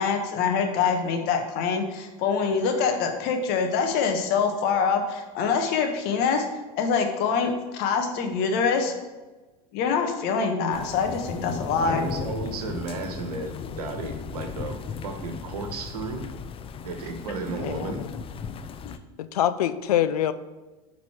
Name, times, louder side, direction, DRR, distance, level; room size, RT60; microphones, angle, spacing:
voice 1, 0.0-6.5 6.8-8.9 9.7-12.0, left 5 dB, 55° left, 1.5 m, -25 dB
sound 1, 10.7-19.0, left 6 dB, 30° left, 0.5 m, -36 dB
voice 2, 11.8-16.3 16.8-18.0, right 4 dB, 85° right, 1.3 m, -34 dB
voice 3, 19.2-20.3, left 11 dB, 80° left, 0.5 m, -24 dB
11.5 x 4.1 x 4.5 m
hypercardioid pair, 95°, 19 cm